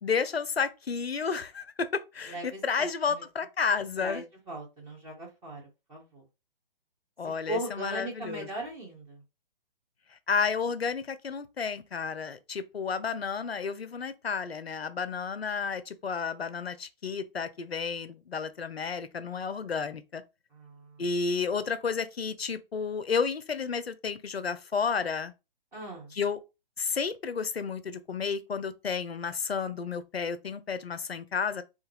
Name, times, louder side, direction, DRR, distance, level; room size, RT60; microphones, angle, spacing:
voice 1, 0.0-4.2 7.2-8.5 10.3-20.2 21.0-25.3 26.1-26.4 26.8-31.6, left 5 dB, 90° left, 0.5 m, -31 dB
voice 2, 2.3-3.2 4.0-5.6 5.9-6.2 7.5-9.2 20.5-21.0 25.7-26.1, right 1 dB, 10° right, 0.5 m, -39 dB
3.3 x 2.2 x 3.1 m
figure-of-eight pair, 130°, 30 cm